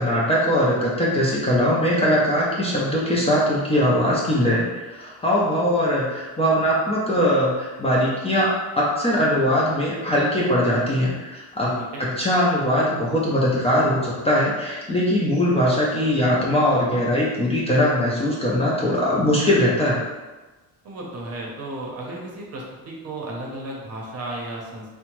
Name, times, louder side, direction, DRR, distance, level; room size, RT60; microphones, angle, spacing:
voice 1, 0.0-20.0, equal, 15° left, -6 dB, 0.4 m, -21 dB
voice 2, 20.8-24.8, right 1 dB, 45° right, -2 dB, 0.7 m, -34 dB
2.7 x 2.1 x 3.0 m, 1.2 s
cardioid pair, 125°, 36 cm